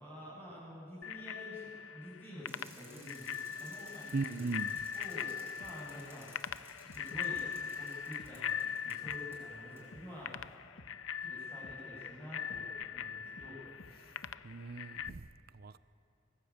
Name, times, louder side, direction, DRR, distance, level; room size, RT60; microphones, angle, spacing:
voice 1, 0.0-4.5 4.9-6.3 6.9-7.5 7.8-10.4 11.2-13.6, left 1 dB, 10° left, -10 dB, 7.8 m, -49 dB
Bicycle bell, 1.0-15.1, left 8 dB, 85° left, 0.6 m, -41 dB
Bicycle, 2.4-9.4 9.8-9.9, right 2 dB, 15° right, 7.0 m, -58 dB
voice 2, 4.1-4.8 14.4-15.3 15.5-15.8, right 3 dB, 50° right, 15 dB, 0.6 m, -37 dB
sound 1, 4.7-4.9 5.6-5.7 6.5-6.6 6.9-7.5 8.2-8.3 9.0-9.2 9.9-10.1 10.3-10.5 10.8-10.9 11.6-11.8 12.5-12.6 13.4-13.5 13.8-13.9 14.2-14.4 15.1-15.2, left 1 dB, 65° left, 1.5 m, -53 dB
25.0 x 18.5 x 8.8 m, 2.5 s
head